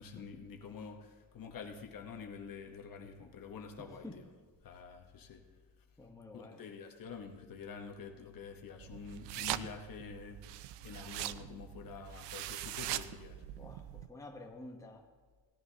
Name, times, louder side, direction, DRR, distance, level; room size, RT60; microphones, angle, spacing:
voice 1, 0.0-4.2 4.6-5.5 6.3-13.4, left 5 dB, 50° left, 1.1 m, -47 dB
voice 2, 3.8-4.2 6.0-6.6 13.6-15.0, left 2 dB, 10° left, 1.0 m, -50 dB
sound 1, 8.8-14.1, right 14 dB, 80° right, 0.5 m, -42 dB
16.5 x 10.5 x 2.8 m
cardioid pair, 115°, 43 cm